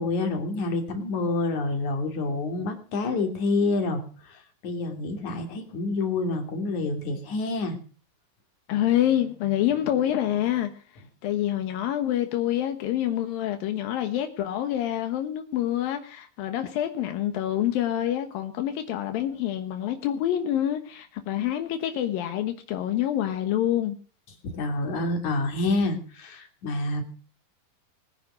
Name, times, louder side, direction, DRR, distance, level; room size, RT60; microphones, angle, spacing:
voice 1, 0.0-7.8 24.4-27.0, left 3 dB, 60° left, 5 dB, 4.2 m, -28 dB
voice 2, 8.7-24.0, left 11 dB, 85° left, 7 dB, 3.0 m, -27 dB
22.0 x 10.0 x 6.3 m, 0.39 s
omnidirectional pair, 4.0 m